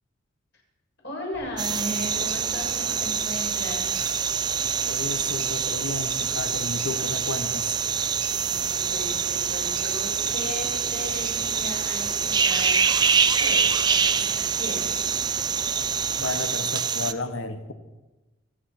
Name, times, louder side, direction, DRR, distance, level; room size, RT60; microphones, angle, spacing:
voice 1, 1.0-3.9 8.1-15.1, left 1 dB, 55° left, -2 dB, 6.8 m, -37 dB
sound 1, 1.3-16.5, equal, 35° left, 4.6 m, -45 dB
sound 2, 1.6-17.1, right 6 dB, 20° right, 0.5 m, -25 dB
sound 3, 1.7-15.2, right 9 dB, 80° right, 1.7 m, -43 dB
voice 2, 4.9-7.8 16.2-17.7, left 3 dB, 75° left, 10 dB, 1.2 m, -32 dB
26.0 x 8.9 x 5.9 m, 1.1 s
head